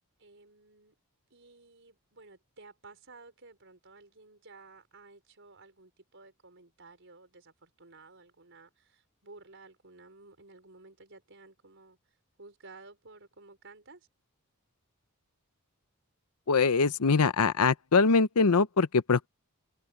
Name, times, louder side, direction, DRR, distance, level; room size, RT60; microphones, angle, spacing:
voice 1, 0.2-1.0 1.3-12.0 12.4-14.1, right 3 dB, 55° right, 5.4 m, -54 dB
voice 2, 16.5-19.3, left 4 dB, 85° left, 0.8 m, -23 dB
head